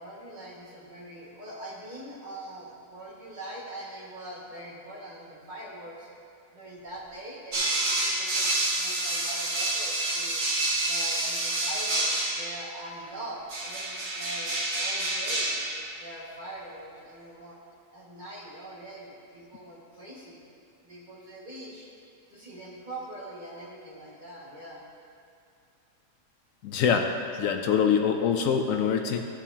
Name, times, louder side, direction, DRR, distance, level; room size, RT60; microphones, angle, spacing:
voice 1, 0.0-6.1 6.5-10.4 10.9-15.6 16.0-17.6 17.9-20.4 20.8-21.9 22.3-24.8, right 1 dB, 35° right, -6 dB, 1.8 m, -43 dB
sound 1, 7.5-12.6 13.5-15.9, right 2 dB, 55° right, 1.4 m, -28 dB
voice 2, 26.6-29.2, left 7 dB, 75° left, 5 dB, 1.0 m, -24 dB
14.5 x 7.1 x 2.8 m, 2.5 s
omnidirectional pair, 1.5 m